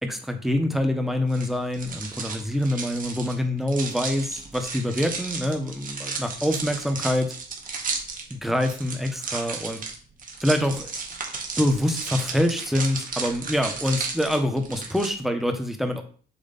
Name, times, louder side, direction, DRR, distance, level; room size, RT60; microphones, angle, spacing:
voice 1, 0.0-7.3 8.3-9.8 10.4-10.9 11.6-16.0, left 1 dB, ahead, 5 dB, 1.1 m, -25 dB
sound 1, 1.3-15.1, right 4 dB, 45° right, 1.6 m, -34 dB
7.2 x 3.1 x 4.1 m, 0.43 s
cardioid pair, 90°, 20 cm